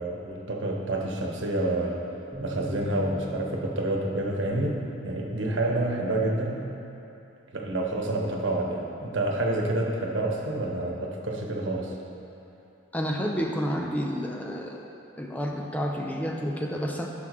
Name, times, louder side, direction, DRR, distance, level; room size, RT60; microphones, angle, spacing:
voice 1, 0.0-2.0 2.4-4.8 5.0-6.7 7.5-11.9, right 2 dB, 80° right, -1 dB, 1.1 m, -28 dB
sound 1, 2.3-8.6, left 1 dB, 10° right, 1.2 m, -45 dB
voice 2, 12.9-14.8 15.2-17.1, equal, 10° left, 0 dB, 0.5 m, -30 dB
14.0 x 5.9 x 3.2 m, 2.9 s
head